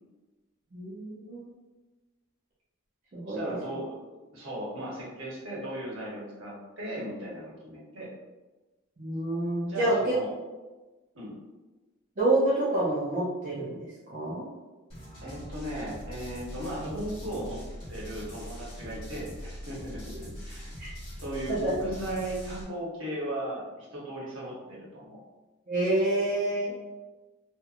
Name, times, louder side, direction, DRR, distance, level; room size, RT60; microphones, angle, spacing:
voice 1, 0.7-1.5 3.1-3.5 9.0-10.1 12.2-14.4 20.8-20.9 21.5-21.7 25.7-26.7, right 1 dB, 35° right, -8 dB, 0.5 m, -28 dB
voice 2, 3.3-8.1 9.7-10.3 11.1-11.4 15.2-17.6 17.9-20.7 21.2-25.2, right 1 dB, 70° right, -6 dB, 0.9 m, -37 dB
sound 1, 14.9-22.6, equal, 25° left, 1.0 m, -42 dB
2.8 x 2.1 x 2.4 m, 1.2 s
head